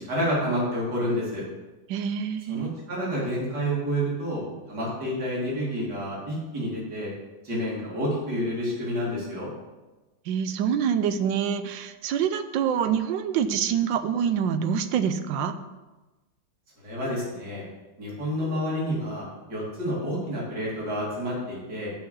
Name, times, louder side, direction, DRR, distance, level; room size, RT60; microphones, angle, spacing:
voice 1, 0.0-1.4 2.5-4.4 4.7-7.1 7.4-9.5 16.8-17.6 18.0-21.9, equal, 60° right, -6 dB, 3.4 m, -29 dB
voice 2, 1.9-2.7 10.3-15.5, right 8 dB, 80° right, 10 dB, 1.3 m, -26 dB
7.2 x 5.8 x 6.9 m, 1.1 s
omnidirectional pair, 2.0 m